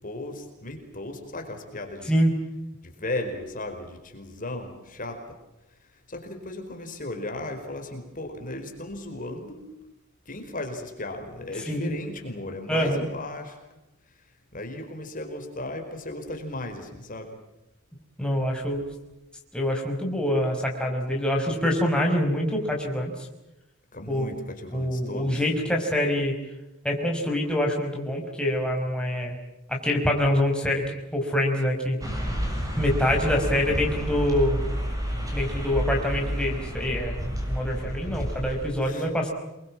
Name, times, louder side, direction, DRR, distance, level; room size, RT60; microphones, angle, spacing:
voice 1, 0.0-2.2 2.8-5.4 5.7-9.7 10.2-13.6 14.0-17.4 23.9-25.5 38.8-39.1, left 2 dB, 40° left, 4 dB, 4.7 m, -36 dB
voice 2, 12.7-13.0 18.2-18.9 19.5-23.1 24.1-24.3 24.7-26.4 26.8-29.3 29.7-30.8 31.1-32.0 32.8-34.6 35.3-39.3, left 1 dB, 5° left, 0 dB, 5.2 m, -25 dB
sound 1, 32.0-38.7, equal, 15° right, 7.6 m, -30 dB
28.0 x 23.5 x 7.4 m, 0.96 s
head